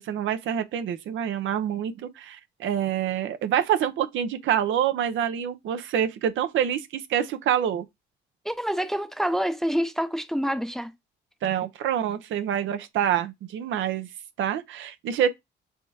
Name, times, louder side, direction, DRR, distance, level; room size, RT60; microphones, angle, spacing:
voice 1, 0.0-7.9 11.4-14.1 14.4-15.3, right 9 dB, 75° right, 0.6 m, -26 dB
voice 2, 8.4-10.9, equal, ahead, 0.5 m, -27 dB
4.4 x 3.5 x 2.7 m
cardioid pair, 90°, 20 cm